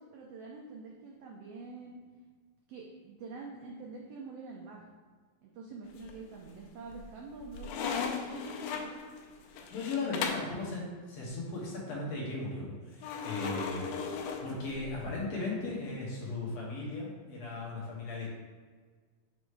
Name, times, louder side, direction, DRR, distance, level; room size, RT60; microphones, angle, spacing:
voice 1, 0.0-2.0 2.7-4.8 5.4-9.0, right 3 dB, 80° right, -1 dB, 1.4 m, -46 dB
sound 1, 5.9-6.5 6.9-10.6 13.0-15.1, left 5 dB, 85° left, 2.1 m, -37 dB
voice 2, 9.7-18.3, left 3 dB, 65° left, -4 dB, 2.2 m, -37 dB
6.5 x 3.0 x 4.8 m, 1.5 s
omnidirectional pair, 3.6 m